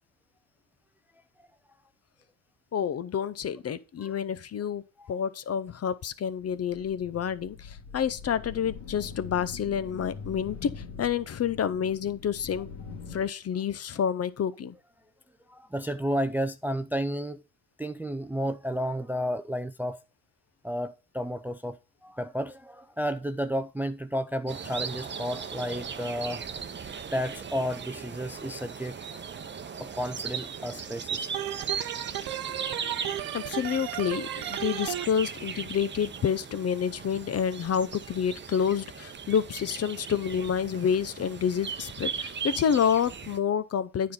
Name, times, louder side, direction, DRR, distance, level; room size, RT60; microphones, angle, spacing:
voice 1, 2.7-4.8 5.1-12.7 13.1-14.7 33.3-44.1, left 8 dB, 35° left, 0.7 m, -28 dB
sound 1, 6.4-13.2, left 5 dB, 75° left, 2.4 m, -43 dB
voice 2, 15.5-17.4 17.8-20.0 20.6-21.8 22.0-26.4 27.1-29.0 29.8-31.3, equal, 5° right, 0.5 m, -32 dB
sound 2, 24.5-43.4, right 6 dB, 25° right, 0.9 m, -38 dB
Organ, 31.3-35.1, right 13 dB, 55° right, 0.8 m, -34 dB
9.4 x 4.3 x 5.2 m
supercardioid pair, 75°, 41 cm